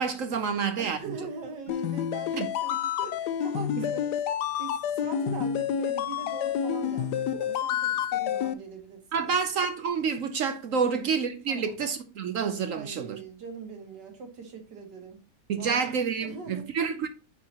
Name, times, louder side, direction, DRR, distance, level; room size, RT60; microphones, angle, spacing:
voice 1, 0.0-1.2 2.3-2.5 3.8-3.9 9.1-13.2 15.5-17.1, right 6 dB, 60° right, 0.9 m, -28 dB
voice 2, 0.8-9.4 10.8-11.1 11.5-11.8 12.7-15.2 15.6-15.8 16.2-16.7, right 4 dB, 90° right, 2.2 m, -42 dB
sound 1, 1.7-8.5, left 9 dB, 75° left, 1.2 m, -29 dB
8.6 x 4.7 x 2.9 m
omnidirectional pair, 1.8 m